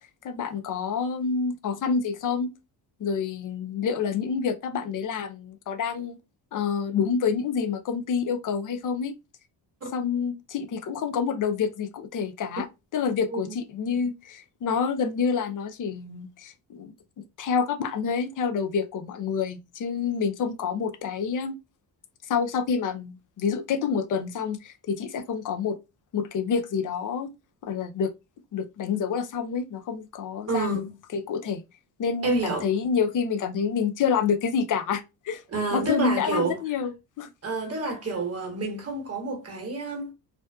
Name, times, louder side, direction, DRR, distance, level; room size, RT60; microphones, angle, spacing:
voice 1, 0.2-2.5 3.0-6.2 6.5-9.1 9.9-12.7 12.9-21.6 22.2-25.8 26.1-27.3 27.6-28.1 28.5-30.8 31.1-31.6 32.0-35.4 35.7-37.3, left 6 dB, 45° left, 0.5 m, -28 dB
voice 2, 30.5-30.9 32.2-32.7 35.5-36.6 37.4-40.1, right 3 dB, 30° right, 1.1 m, -28 dB
2.5 x 2.2 x 2.3 m
supercardioid pair, 70°, 47 cm